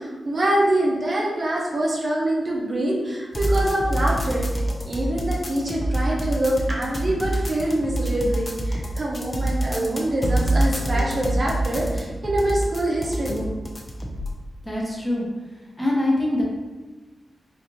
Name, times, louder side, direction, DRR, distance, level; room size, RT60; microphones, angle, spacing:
voice 1, 0.0-4.5 4.8-13.5, right 1 dB, 50° right, -3 dB, 0.8 m, -24 dB
sound 1, 3.3-14.3, right 1 dB, 25° left, 0.6 m, -25 dB
voice 2, 14.6-15.2 15.8-16.4, left 1 dB, 10° left, -4 dB, 1.1 m, -23 dB
3.9 x 2.5 x 2.9 m, 1.2 s
cardioid pair, 65°, 0 cm